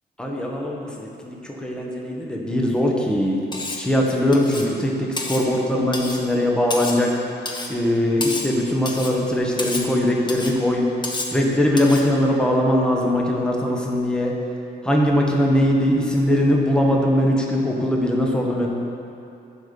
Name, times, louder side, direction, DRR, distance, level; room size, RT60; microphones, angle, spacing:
voice 1, 0.2-3.4 3.8-7.1 7.7-10.8 11.3-14.3 14.8-18.7, left 1 dB, 5° left, -1 dB, 1.2 m, -21 dB
Cutlery silverware, 3.5-3.9 4.3-4.7 5.2-5.5 5.9-6.2 6.7-7.1 7.5-7.7 8.2-8.6 8.9-9.2 9.6-9.9 10.3-10.6 11.0-11.4 11.8-12.1, left 2 dB, 20° left, 1.1 m, -30 dB
10.5 x 5.0 x 7.0 m, 2.7 s
cardioid pair, 115°, 20 cm